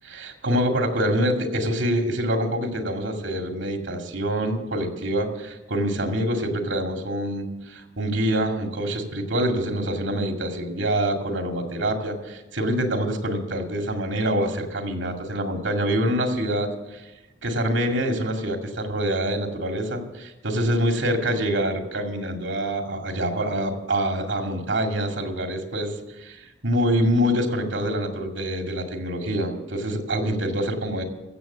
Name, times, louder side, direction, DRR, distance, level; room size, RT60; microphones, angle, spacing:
voice 1, 0.0-17.0 17.4-31.0, equal, 85° right, 3 dB, 2.3 m, -25 dB
15.5 x 7.8 x 7.3 m, 1.1 s
head